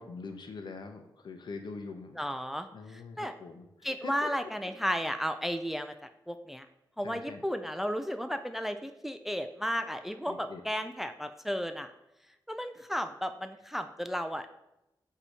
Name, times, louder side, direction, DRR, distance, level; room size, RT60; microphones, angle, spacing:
voice 1, 0.0-2.2 2.7-3.7 4.0-4.3 7.0-7.4 10.2-10.6, left 4 dB, 70° left, 6 dB, 0.8 m, -43 dB
voice 2, 2.2-3.3 3.8-6.7 7.0-11.9 12.5-14.5, equal, 5° right, 9 dB, 0.4 m, -34 dB
7.9 x 2.9 x 4.8 m, 0.89 s
wide cardioid pair, 115°, 8 cm